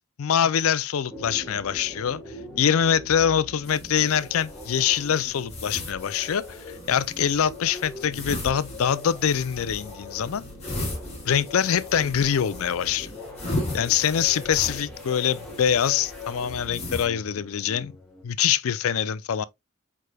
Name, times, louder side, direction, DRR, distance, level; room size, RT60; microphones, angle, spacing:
voice 1, 0.2-2.2 2.6-10.4 11.3-13.1 13.7-17.9 18.2-19.4, left 8 dB, 70° left, 0.4 m, -24 dB
sound 1, 1.1-18.2, left 2 dB, ahead, 2.0 m, -42 dB
sound 2, 3.6-17.0, left 1 dB, 30° left, 2.2 m, -37 dB
4.7 x 4.7 x 2.2 m
head